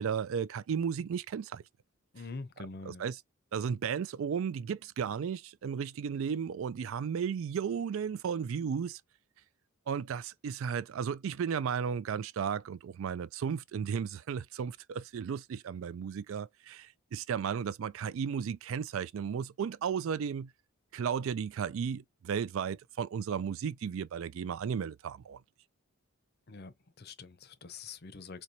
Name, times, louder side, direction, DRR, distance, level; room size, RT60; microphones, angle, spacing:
voice 1, 0.0-1.6 3.0-3.2 3.5-9.0 9.9-20.5 20.9-25.4, right 7 dB, 65° right, 0.3 m, -34 dB
voice 2, 2.1-3.0 26.5-28.4, left 4 dB, 45° left, 0.6 m, -45 dB
4.5 x 2.8 x 2.7 m
head